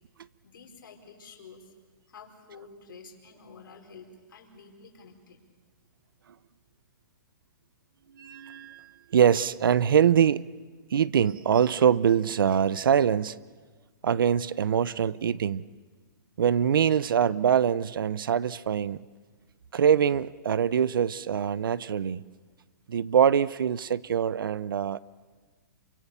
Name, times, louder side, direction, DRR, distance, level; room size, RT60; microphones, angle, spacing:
voice 1, 0.4-1.7 2.1-5.4, left 5 dB, 75° left, 4.4 m, -50 dB
voice 2, 8.1-10.4 10.9-13.4 14.0-15.6 16.4-19.0 19.7-22.2 22.9-25.0, right 8 dB, 90° right, 0.7 m, -24 dB
28.0 x 24.5 x 6.9 m
hypercardioid pair, 165°, 11 cm